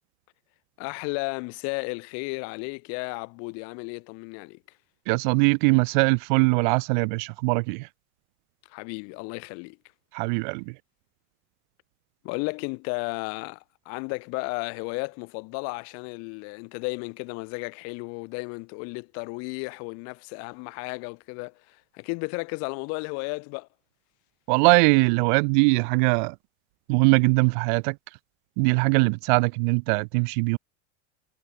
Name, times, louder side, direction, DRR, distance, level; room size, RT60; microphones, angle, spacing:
voice 1, 0.8-4.6 8.7-9.8 12.2-23.7, left 33 dB, 45° left, 1.3 m, -34 dB
voice 2, 5.1-7.9 10.1-10.8 24.5-26.4 26.9-28.0 28.6-30.6, right 32 dB, 45° right, 0.5 m, -21 dB
supercardioid pair, 170°, 35 cm